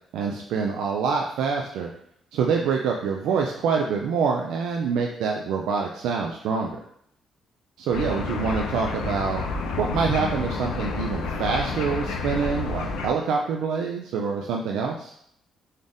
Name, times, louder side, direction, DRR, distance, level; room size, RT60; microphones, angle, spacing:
voice 1, 0.1-1.9 2.3-6.8 7.8-9.4 9.8-15.1, right 5 dB, 90° right, 1 dB, 0.3 m, -26 dB
sound 1, 7.9-13.1, left 3 dB, 90° left, 0.4 m, -29 dB
4.0 x 3.4 x 2.5 m, 0.71 s
cardioid pair, 90°, 0 cm